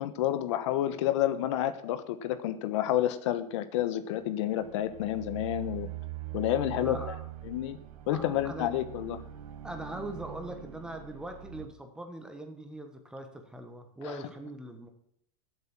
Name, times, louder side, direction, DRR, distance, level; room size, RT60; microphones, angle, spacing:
voice 1, 0.0-5.9 6.3-7.0 7.4-7.8 8.1-9.2 14.1-14.2, left 12 dB, 55° left, 13 dB, 1.2 m, -29 dB
sound 1, 4.2-11.7, right 13 dB, 80° right, 1.8 m, -42 dB
voice 2, 6.6-7.2 8.1-8.7 9.6-14.9, right 1 dB, 5° right, 6 dB, 1.2 m, -41 dB
13.5 x 8.1 x 7.2 m, 0.72 s
supercardioid pair, 170°, 18 cm